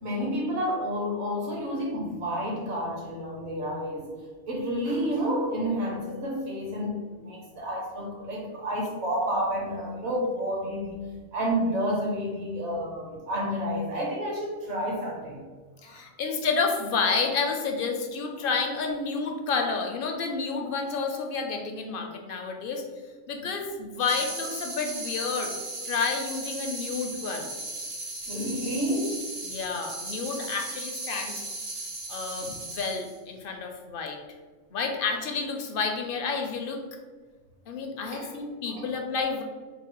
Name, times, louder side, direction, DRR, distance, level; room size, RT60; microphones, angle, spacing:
voice 1, 0.0-4.1 4.5-11.0 11.3-15.4 15.8-16.1 23.4-23.5 28.3-29.3 32.4-32.5 38.1-38.3 38.7-38.8, equal, 65° right, -1 dB, 1.3 m, -30 dB
voice 2, 15.8-22.8 23.3-25.5 25.8-27.5 29.4-31.4 32.1-34.2 34.7-36.8 37.7-39.4, left 4 dB, 60° left, 3 dB, 0.6 m, -30 dB
sound 1, 24.0-33.2, right 2 dB, 80° right, 1.4 m, -37 dB
3.9 x 2.1 x 4.5 m, 1.4 s
omnidirectional pair, 1.3 m